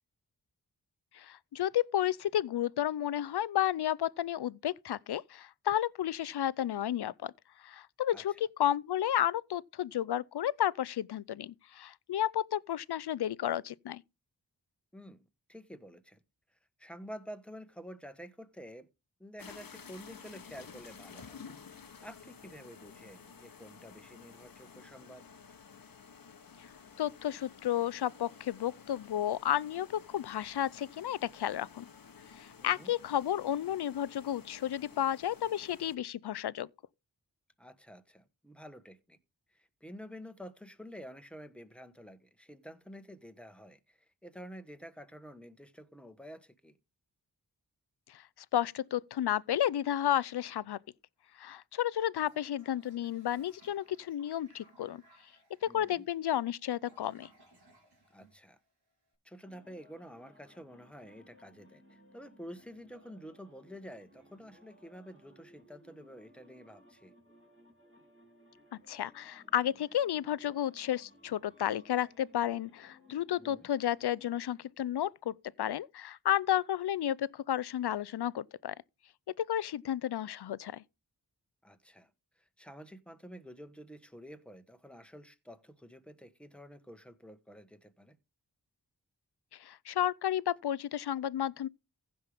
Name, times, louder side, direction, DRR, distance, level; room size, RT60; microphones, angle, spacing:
voice 1, 1.1-7.3 7.6-14.0 27.0-31.9 32.4-36.7 48.1-48.2 48.5-50.8 51.4-55.0 55.7-57.3 68.9-78.7 79.4-80.8 89.5-91.7, left 11 dB, 75° left, 0.5 m, -32 dB
voice 2, 14.9-15.2 15.5-16.2 16.8-18.9 19.2-21.4 22.0-25.3 32.6-32.9 37.6-39.2 39.5-46.8 55.7-56.0 58.1-58.6 59.2-67.1 73.4-73.7 81.6-82.1 82.4-88.2, equal, 5° left, 1.2 m, -50 dB
sound 1, 19.4-36.0, left 6 dB, 55° left, 1.0 m, -53 dB
Toilet flush, 52.1-59.0, right 2 dB, 70° right, 3.9 m, -64 dB
sound 2, 59.4-74.4, left 1 dB, 30° right, 3.6 m, -61 dB
15.5 x 5.5 x 3.4 m
cardioid pair, 40°, 40 cm